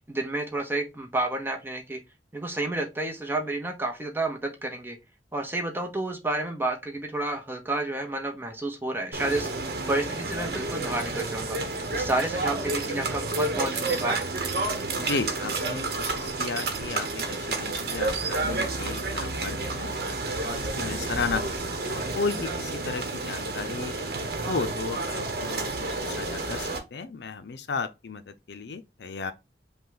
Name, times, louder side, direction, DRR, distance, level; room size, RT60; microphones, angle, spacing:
voice 1, 0.1-2.0 2.3-5.0 5.3-9.5 9.9-11.6 11.9-14.2, right 2 dB, 15° right, 0.8 m, -30 dB
sound 1, 9.1-26.8, right 3 dB, 60° right, 1.0 m, -30 dB
voice 2, 15.0-19.9 20.4-23.9 24.5-29.3, left 4 dB, 70° left, 0.5 m, -34 dB
5.5 x 2.3 x 3.8 m
head